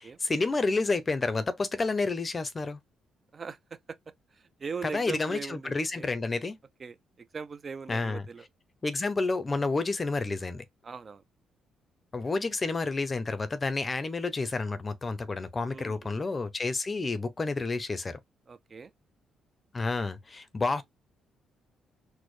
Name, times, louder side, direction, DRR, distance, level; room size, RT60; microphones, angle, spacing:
voice 1, 0.0-2.8 4.8-6.6 7.9-8.3 8.8-10.6 12.1-18.2 19.7-20.8, left 3 dB, 30° left, 0.6 m, -30 dB
voice 2, 4.3-6.1 6.8-7.0 7.3-8.5 10.8-11.2 15.6-16.3 18.5-18.9, right 5 dB, 40° right, 0.4 m, -40 dB
4.2 x 2.1 x 3.1 m
cardioid pair, 90°, 0 cm